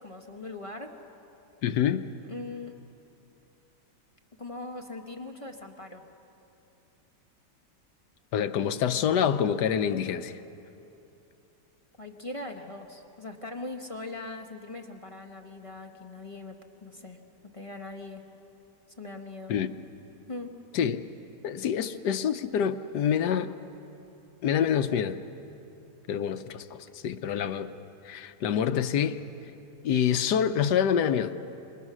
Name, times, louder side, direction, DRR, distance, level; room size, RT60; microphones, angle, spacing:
voice 1, 0.0-0.9 2.3-2.7 4.4-6.0 12.0-17.2 17.5-18.2 19.0-19.5 20.3-20.5, left 2 dB, 20° left, 2 dB, 1.1 m, -40 dB
voice 2, 1.6-2.0 8.3-10.4 19.5-19.7 20.7-21.0 21.4-23.6 24.4-25.2 26.1-27.7 28.0-29.2 29.8-31.3, left 8 dB, 75° left, 10 dB, 1.3 m, -26 dB
27.0 x 22.5 x 6.2 m, 2.8 s
omnidirectional pair, 1.9 m